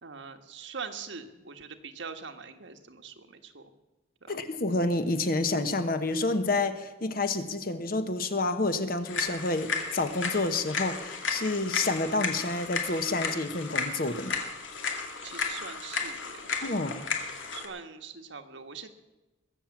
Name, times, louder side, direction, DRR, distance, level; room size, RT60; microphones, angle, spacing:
voice 1, 0.0-3.7 4.2-4.4 15.2-16.5 17.5-18.9, right 5 dB, 70° right, 6 dB, 1.3 m, -42 dB
voice 2, 4.3-14.4 16.6-17.1, left 2 dB, 50° left, 9 dB, 1.1 m, -29 dB
sound 1, 9.0-17.7, left 4 dB, 80° left, 2.2 m, -34 dB
21.5 x 7.5 x 7.2 m, 1.1 s
head